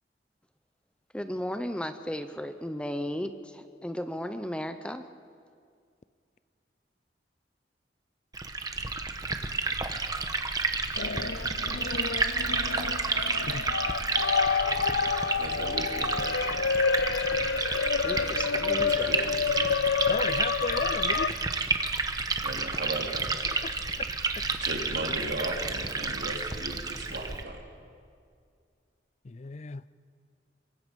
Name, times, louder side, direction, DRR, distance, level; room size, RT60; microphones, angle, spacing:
voice 1, 1.1-5.0 17.9-19.1, equal, 5° left, 9 dB, 0.7 m, -35 dB
Liquid, 8.3-27.4, right 3 dB, 20° right, 1.1 m, -31 dB
sound 1, 11.0-21.3, left 5 dB, 90° left, 0.5 m, -29 dB
voice 2, 15.4-16.2 18.8-19.3 22.4-23.3 24.6-27.6, right 2 dB, 75° right, 1 dB, 3.2 m, -36 dB
voice 3, 20.1-21.4 23.6-23.7 24.0-24.1 29.2-29.8, left 4 dB, 40° left, 17 dB, 0.4 m, -34 dB
26.0 x 23.5 x 5.3 m, 2.2 s
head